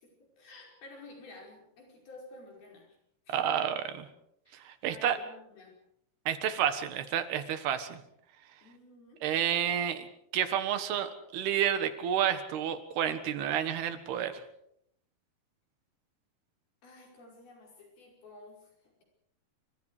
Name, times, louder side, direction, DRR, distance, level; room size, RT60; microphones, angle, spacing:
voice 1, 0.0-2.9 3.3-3.4 4.5-5.7 8.6-9.2 16.8-18.6 18.8-19.0, left 2 dB, 65° left, 0 dB, 7.2 m, -52 dB
voice 2, 3.3-4.1 4.7-5.2 6.3-8.0 9.2-10.1 10.3-14.3, right 9 dB, 80° right, 10 dB, 3.5 m, -30 dB
27.5 x 25.5 x 5.0 m, 0.73 s
omnidirectional pair, 4.6 m